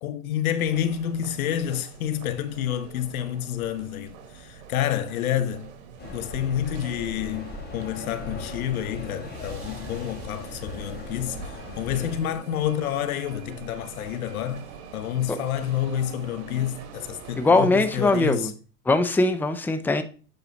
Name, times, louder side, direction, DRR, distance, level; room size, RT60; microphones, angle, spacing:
voice 1, 0.0-5.7 6.1-11.4 11.8-14.7 14.9-18.5, left 10 dB, 80° left, 1.1 m, -29 dB
sound 1, 0.6-18.2, right 6 dB, 70° right, 2.1 m, -44 dB
sound 2, 6.0-12.2, left 2 dB, 20° left, 3.3 m, -38 dB
voice 2, 17.4-18.5 18.9-20.0, left 2 dB, 5° left, 0.7 m, -21 dB
9.1 x 4.9 x 4.0 m
supercardioid pair, 115°, 42 cm